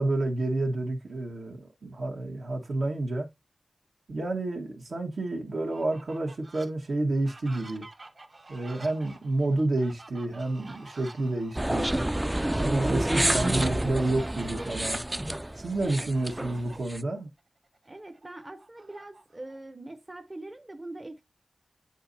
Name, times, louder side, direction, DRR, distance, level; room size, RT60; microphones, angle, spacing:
voice 1, 0.0-3.3 4.1-7.8 8.5-11.9 12.6-15.0 15.6-17.3, right 2 dB, 80° right, 1.5 m, -29 dB
Fowl, 5.6-6.7 7.1-14.9 15.9-17.0 17.4-17.5 17.9-19.6, right 2 dB, 55° right, 1.9 m, -49 dB
sound 1, 11.5-17.0, right 1 dB, 15° right, 0.3 m, -28 dB
voice 2, 15.8-16.1 17.9-21.2, right 2 dB, 30° right, 0.7 m, -43 dB
9.1 x 4.1 x 2.7 m
cardioid pair, 55°, 0 cm